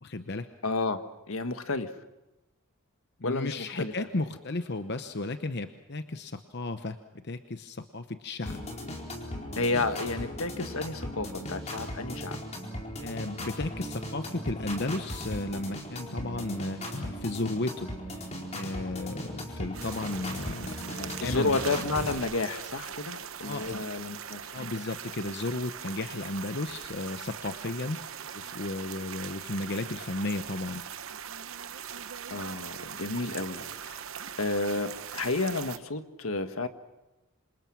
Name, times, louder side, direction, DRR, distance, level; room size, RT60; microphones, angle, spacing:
voice 1, 0.0-0.5 3.2-8.6 13.0-21.6 23.4-23.8 24.5-30.8, left 2 dB, 50° left, 9 dB, 0.9 m, -34 dB
voice 2, 0.6-1.9 3.2-3.9 9.6-12.4 21.2-24.7 32.3-34.0 34.4-36.7, left 3 dB, 75° left, 9 dB, 1.5 m, -31 dB
sound 1, 8.5-22.2, equal, 30° left, 4.2 m, -38 dB
sound 2, 19.7-35.8, right 8 dB, 65° right, 1.0 m, -41 dB
27.0 x 27.0 x 6.2 m, 1.0 s
head